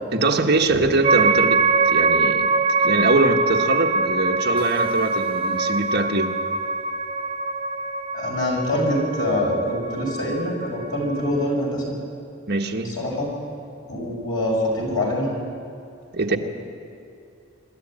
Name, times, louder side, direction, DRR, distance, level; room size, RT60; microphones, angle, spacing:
voice 1, 0.1-2.5 2.8-6.4 12.5-12.9 16.1-16.4, right 2 dB, 50° right, 2 dB, 1.4 m, -22 dB
sound 1, 1.0-11.5, right 3 dB, 25° right, 0.7 m, -23 dB
voice 2, 8.1-11.9 12.8-13.3 13.8-15.3 16.3-16.4, left 1 dB, 70° left, -2 dB, 5.6 m, -25 dB
24.5 x 12.5 x 8.9 m, 2.6 s
head